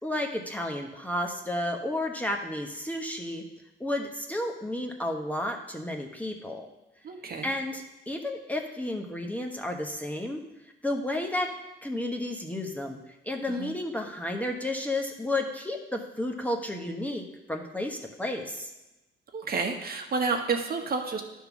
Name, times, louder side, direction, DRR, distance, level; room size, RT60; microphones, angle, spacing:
voice 1, 0.0-3.4 3.8-6.7 7.4-10.4 10.8-11.5 11.8-13.0 13.2-18.7, left 1 dB, 5° left, 2 dB, 1.0 m, -32 dB
voice 2, 7.0-7.5 13.5-13.7 19.3-21.2, right 4 dB, 50° right, 3 dB, 1.1 m, -30 dB
10.0 x 3.7 x 6.0 m, 1.0 s
cardioid pair, 90°, 20 cm